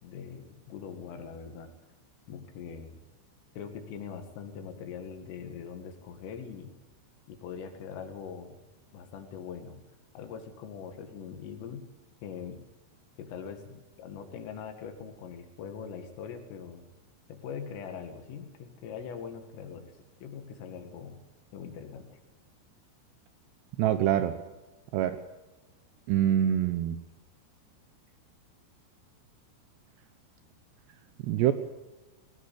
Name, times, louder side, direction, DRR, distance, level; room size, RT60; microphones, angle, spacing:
voice 1, 0.0-1.7 2.3-3.0 3.6-6.7 7.3-8.6 8.9-9.8 10.1-11.9 12.2-12.6 13.2-16.9 17.3-19.9 20.2-21.2 21.5-22.2, left 7 dB, 80° left, 6 dB, 4.6 m, -42 dB
voice 2, 23.8-24.3 24.9-25.2 26.1-27.0 31.2-31.5, right 11 dB, 80° right, 11 dB, 2.6 m, -25 dB
19.5 x 17.0 x 8.5 m, 1.1 s
omnidirectional pair, 5.8 m